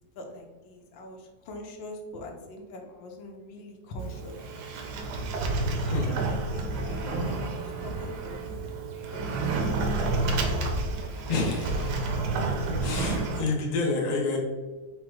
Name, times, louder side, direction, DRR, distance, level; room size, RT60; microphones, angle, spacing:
voice 1, 0.1-4.5 5.8-8.7 9.1-10.8, left 1 dB, 90° left, 2 dB, 1.5 m, -43 dB
Sliding door, 4.0-13.4, right 2 dB, 70° right, 1.1 m, -30 dB
voice 2, 11.3-12.4 12.8-14.4, left 3 dB, 55° left, -1 dB, 0.4 m, -29 dB
4.8 x 2.1 x 4.6 m, 1.3 s
omnidirectional pair, 2.0 m